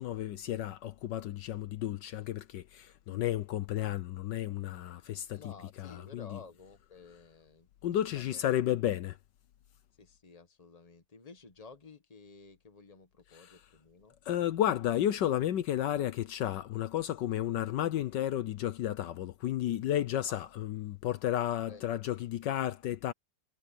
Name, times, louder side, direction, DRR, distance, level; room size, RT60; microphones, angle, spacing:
voice 1, 0.0-5.5 5.8-6.4 7.8-9.2 13.3-13.6 14.3-23.1, left 12 dB, 75° left, 1.4 m, -32 dB
voice 2, 5.3-7.7 7.9-8.4 10.0-14.1 20.3-20.4 21.7-21.8, left 4 dB, 20° left, 1.5 m, -53 dB
omnidirectional pair, 2.0 m